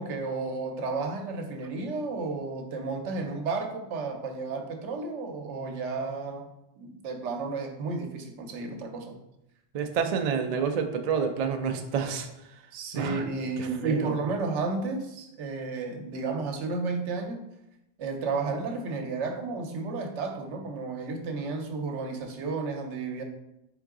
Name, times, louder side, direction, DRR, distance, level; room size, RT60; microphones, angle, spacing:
voice 1, 0.0-6.5 6.8-9.2 12.7-17.4 18.0-23.2, right 3 dB, 85° right, 4 dB, 1.0 m, -32 dB
voice 2, 9.7-12.3 12.9-13.2 13.6-14.1, right 6 dB, 65° right, 6 dB, 0.4 m, -28 dB
3.8 x 3.8 x 3.6 m, 0.87 s
omnidirectional pair, 1.2 m